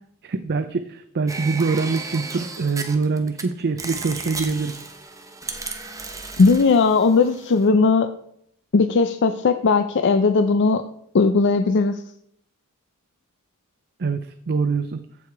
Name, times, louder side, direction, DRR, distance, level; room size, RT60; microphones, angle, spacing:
voice 1, 0.2-4.7 14.0-15.0, right 4 dB, 45° right, 10 dB, 0.5 m, -24 dB
sound 1, 1.3-3.4 3.8-7.7, right 3 dB, 15° right, 1.0 m, -34 dB
voice 2, 6.4-8.1 8.7-10.8 11.1-12.0, left 4 dB, 55° left, 8 dB, 0.5 m, -18 dB
14.5 x 4.9 x 4.7 m, 0.69 s
head